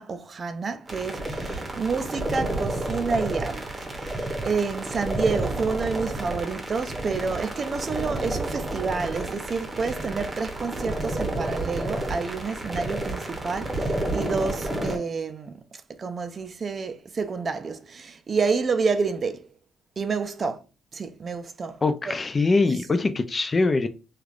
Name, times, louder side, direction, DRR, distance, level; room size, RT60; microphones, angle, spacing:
voice 1, 0.0-3.6 4.0-15.6 16.0-19.5 20.0-20.6 20.9-21.8 22.1-22.2, right 4 dB, 40° right, 0.4 m, -29 dB
sound 1, 0.9-15.0, right 1 dB, 25° right, 0.8 m, -30 dB
voice 2, 21.8-23.9, left 3 dB, 30° left, 0.3 m, -23 dB
3.2 x 2.3 x 2.4 m
cardioid pair, 90°, 0 cm